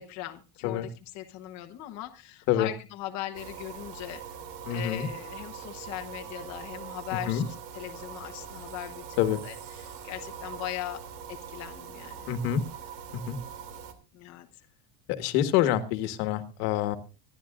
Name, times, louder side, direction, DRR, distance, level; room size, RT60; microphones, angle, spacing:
voice 1, 0.0-4.2 4.7-9.2 9.4-11.0 11.3-12.3 14.1-14.5, left 14 dB, 35° left, 5 dB, 1.1 m, -39 dB
sound 1, 3.3-13.9, right 7 dB, 85° right, 2.7 m, -42 dB
voice 2, 4.6-5.1 7.3-7.4 9.2-9.4 12.3-12.6 13.1-13.4 15.2-17.0, left 11 dB, 70° left, 10 dB, 1.7 m, -26 dB
25.5 x 11.5 x 2.5 m, 0.31 s
cardioid pair, 175°, 48 cm